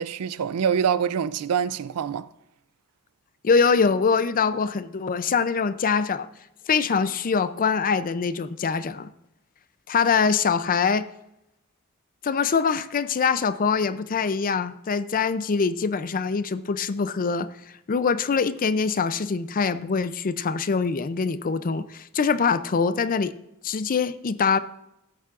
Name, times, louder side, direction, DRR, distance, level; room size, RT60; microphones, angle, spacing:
voice 1, 0.0-2.3, right 7 dB, 85° right, 0.4 m, -25 dB
voice 2, 3.4-6.3 6.7-9.1 9.9-11.1 12.2-17.5 17.9-23.3 23.6-24.6, left 5 dB, 40° left, 0.4 m, -23 dB
13.5 x 8.3 x 2.5 m
head